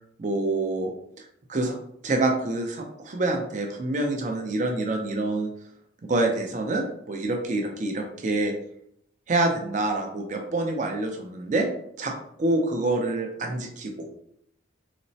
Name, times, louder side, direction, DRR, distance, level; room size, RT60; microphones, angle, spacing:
voice 1, 0.2-0.9 1.5-1.8 2.0-5.5 6.0-8.5 9.3-11.7 12.0-14.1, right 2 dB, 40° right, 3 dB, 0.4 m, -26 dB
4.1 x 2.0 x 2.6 m, 0.70 s
head